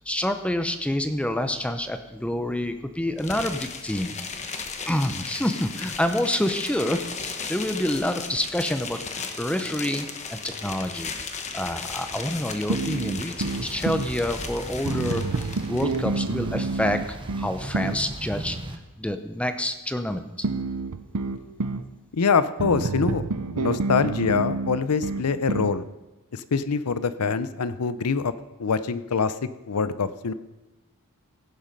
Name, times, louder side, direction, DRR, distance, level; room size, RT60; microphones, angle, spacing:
voice 1, 0.1-4.1 4.5-11.1 11.5-18.6 19.0-20.2, left 1 dB, 5° left, 8 dB, 0.7 m, -28 dB
sound 1, 3.2-16.0, left 5 dB, 30° left, 1.1 m, -36 dB
sound 2, 12.7-14.1 14.8-18.0 20.4-21.9 22.6-25.8, right 3 dB, 85° right, 0.7 m, -28 dB
sound 3, 13.4-18.8, right 1 dB, 25° right, 1.0 m, -38 dB
voice 2, 22.1-23.2 23.5-25.9 26.3-28.3 28.6-30.3, left 5 dB, 85° left, 14 dB, 0.6 m, -24 dB
16.5 x 7.3 x 5.4 m, 1.0 s
head